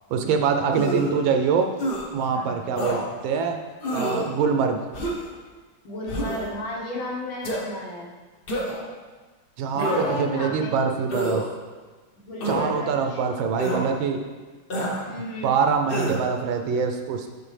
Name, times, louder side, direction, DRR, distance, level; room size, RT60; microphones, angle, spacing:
voice 1, 0.1-1.7 2.1-3.6 3.9-4.8 9.6-11.4 12.5-14.2 15.4-17.3, right 6 dB, 80° right, 4 dB, 1.3 m, -24 dB
sound 1, 0.7-1.2 1.8-2.0 2.8-3.0 3.8-4.3 4.9-5.3 6.1-6.5 7.4-7.6 8.5-8.9 9.7-10.3 11.1-11.4 12.4-12.7 13.6-13.8 14.7-15.0 15.9-16.2, equal, 50° left, 0.6 m, -27 dB
voice 2, 2.3-2.8 5.8-8.1 9.8-10.7 12.2-13.2 15.1-15.5 15.9-16.0, left 1 dB, 75° left, -2 dB, 1.9 m, -34 dB
6.8 x 5.8 x 3.3 m, 1.3 s
omnidirectional pair, 2.2 m